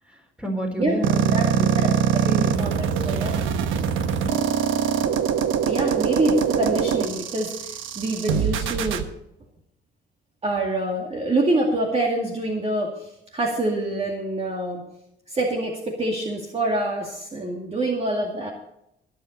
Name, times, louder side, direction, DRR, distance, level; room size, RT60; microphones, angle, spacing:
voice 1, 0.4-1.9 2.2-2.6, right 1 dB, 5° right, 2 dB, 4.1 m, -29 dB
sound 1, 1.0-9.0, right 8 dB, 85° right, 1.1 m, -23 dB
voice 2, 2.3-3.4 5.6-9.0 10.4-14.8 15.3-18.5, right 1 dB, 30° right, 0 dB, 2.2 m, -26 dB
20.5 x 7.6 x 4.1 m, 0.82 s
cardioid pair, 90°, 20 cm